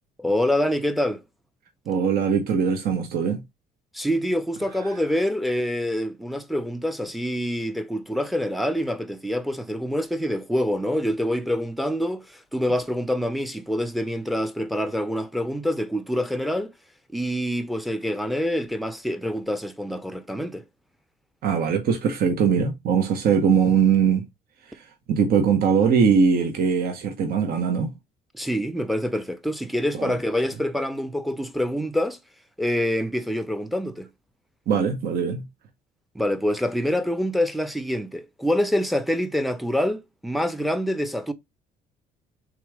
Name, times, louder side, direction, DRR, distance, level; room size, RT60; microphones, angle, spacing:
voice 1, 0.2-1.2 3.9-12.3 12.5-16.7 17.1-20.6 28.4-32.2 32.6-34.1 36.1-41.3, equal, ahead, 0.6 m, -26 dB
voice 2, 1.9-3.4 21.4-24.3 25.1-27.9 29.9-30.2 34.7-35.4, right 6 dB, 60° right, 0.9 m, -21 dB
3.7 x 3.0 x 4.7 m
cardioid pair, 110°, 17 cm